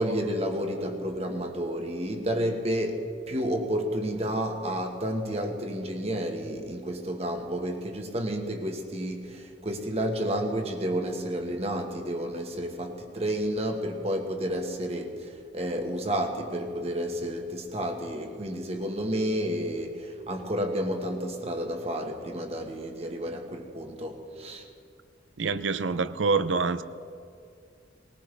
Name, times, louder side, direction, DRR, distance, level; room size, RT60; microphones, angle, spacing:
voice 1, 0.0-24.7, equal, 35° right, 1.4 m, -31 dB
voice 2, 25.4-26.8, right 4 dB, 80° right, 0.6 m, -26 dB
20.5 x 19.5 x 3.4 m
head